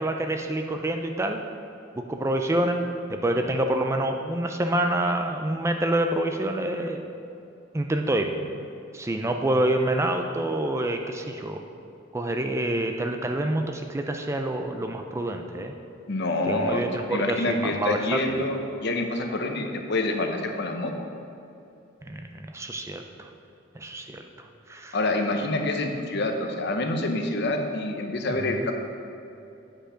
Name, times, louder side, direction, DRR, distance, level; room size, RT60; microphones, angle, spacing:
voice 1, 0.0-1.4 2.0-2.8 3.1-7.1 7.7-8.4 8.9-11.6 12.1-15.7 16.5-18.4 22.1-23.3 23.8-24.3 24.7-25.0, right 1 dB, 15° right, 4 dB, 0.4 m, -27 dB
voice 2, 16.1-16.8 17.1-20.9 24.9-28.7, left 2 dB, 55° left, 4 dB, 0.8 m, -27 dB
8.7 x 5.2 x 5.0 m, 2.7 s
head